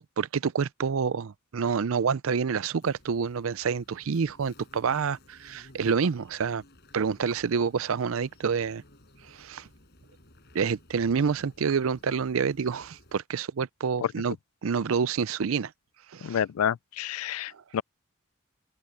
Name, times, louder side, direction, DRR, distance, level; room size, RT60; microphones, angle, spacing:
voice 1, 0.0-6.6 6.9-8.8 9.3-9.7 10.5-14.4 14.6-15.7 16.1-16.4 17.5-17.6, right 6 dB, 75° right, 0.5 m, -28 dB
sound 1, 2.8-13.2, left 1 dB, 50° left, 5.3 m, -56 dB
voice 2, 16.2-17.8, left 9 dB, 85° left, 0.4 m, -29 dB
open air
head